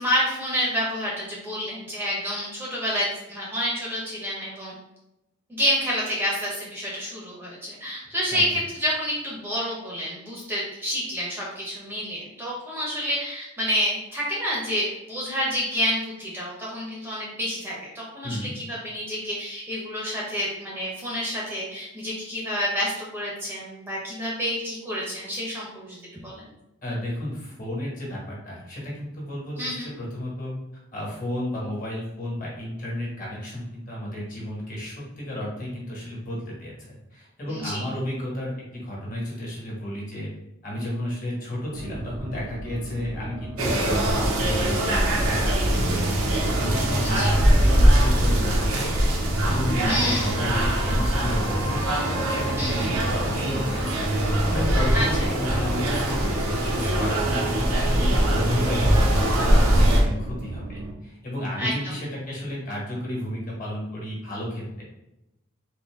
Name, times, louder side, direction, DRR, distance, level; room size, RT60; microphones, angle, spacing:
voice 1, 0.0-4.7 5.5-26.0 26.2-26.5 29.6-29.9 37.5-37.8 47.0-47.4 49.8-50.3 52.6-52.9 54.9-55.3 61.6-61.9, equal, 10° right, -5 dB, 0.7 m, -28 dB
voice 2, 8.0-8.4 18.2-18.5 26.8-30.5 30.9-40.3 40.6-46.0 46.4-49.1 49.5-54.1 54.5-64.8, left 1 dB, 40° left, -4 dB, 1.4 m, -32 dB
sound 1, 41.7-60.9, right 1 dB, 60° right, 0.5 m, -38 dB
sound 2, 43.6-60.0, right 1 dB, 85° right, 0.8 m, -22 dB
4.0 x 2.7 x 3.5 m, 0.90 s
head